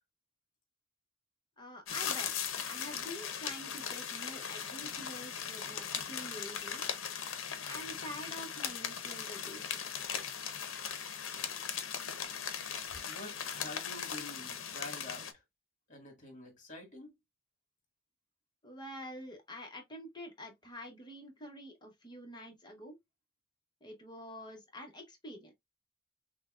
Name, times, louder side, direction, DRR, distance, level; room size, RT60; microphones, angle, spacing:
voice 1, 1.6-2.3 2.6-6.8 7.6-9.8 18.6-22.9 23.8-25.5, equal, 20° left, 1.0 m, -47 dB
sound 1, 1.9-15.3, left 8 dB, 75° left, 0.7 m, -39 dB
voice 2, 12.9-15.3 15.9-17.1, left 2 dB, 40° left, 1.7 m, -47 dB
6.0 x 2.2 x 2.4 m
head